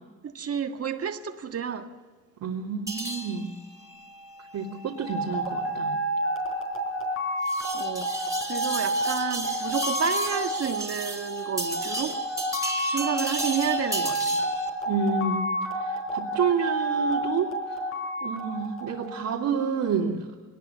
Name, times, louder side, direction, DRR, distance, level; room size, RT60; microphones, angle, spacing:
voice 1, 0.2-1.9 7.7-8.1 8.5-12.2 12.9-14.4, right 7 dB, 50° right, 1.7 m, -30 dB
voice 2, 2.4-3.6 4.5-6.0 14.9-15.5 15.8-17.5 18.2-20.3, right 6 dB, 75° right, 2.6 m, -29 dB
sound 1, 2.9-14.7, right 2 dB, 10° right, 2.9 m, -35 dB
sound 2, 5.0-19.4, equal, 45° left, 5.2 m, -30 dB
21.5 x 20.5 x 6.9 m
cardioid pair, 90°, 30 cm